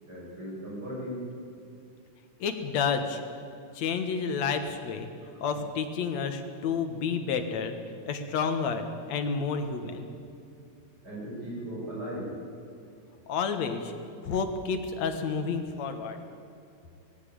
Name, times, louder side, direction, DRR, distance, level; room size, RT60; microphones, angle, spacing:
voice 1, 0.1-1.3 11.0-12.4, equal, 30° right, -6 dB, 7.1 m, -37 dB
voice 2, 2.4-3.2 3.8-5.1 5.4-7.8 8.1-10.1 13.3-13.9 14.2-16.2, left 5 dB, 60° left, 6 dB, 2.6 m, -30 dB
19.0 x 16.0 x 8.8 m, 2.6 s
omnidirectional pair, 3.7 m